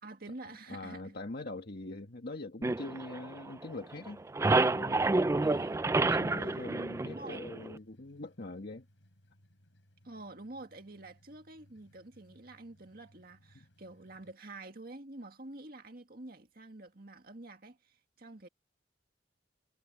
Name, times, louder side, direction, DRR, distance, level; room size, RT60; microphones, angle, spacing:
voice 1, 0.0-1.2 5.4-5.8 6.4-6.6 7.0-7.4 10.0-18.5, right 2 dB, 50° right, 2.0 m, -48 dB
voice 2, 0.7-4.2 4.5-5.3 6.1-8.8 13.5-13.7, left 2 dB, 55° left, 1.6 m, -43 dB
sound 1, 2.6-3.8 4.1-7.8, right 2 dB, 15° right, 0.3 m, -29 dB
sound 2, 3.6-14.3, equal, 80° left, 5.8 m, -65 dB
head